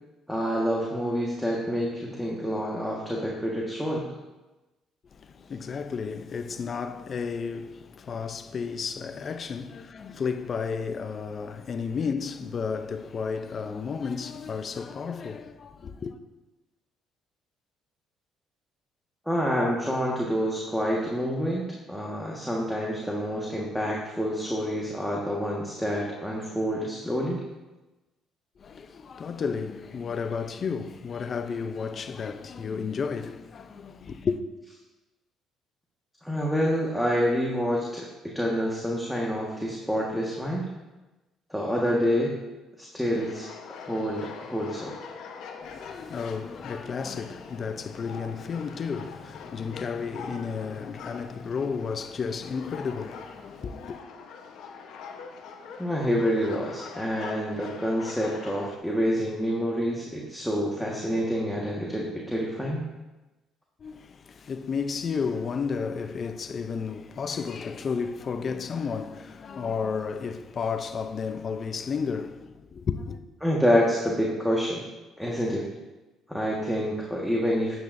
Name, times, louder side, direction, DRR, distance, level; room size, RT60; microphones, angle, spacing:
voice 1, 0.3-4.1 19.2-27.4 36.2-40.7 41.5-42.3 42.8-43.5 43.8-44.9 55.8-62.8 73.4-74.8 75.2-75.6 76.3-77.8, equal, ahead, 1.6 m, -27 dB
voice 2, 5.1-16.2 28.6-34.4 45.6-54.0 63.8-73.2, left 5 dB, 45° left, 0.6 m, -32 dB
sound 1, 43.1-58.8, left 5 dB, 75° left, 1.0 m, -43 dB
9.8 x 8.9 x 2.7 m
supercardioid pair, 80°, 0 cm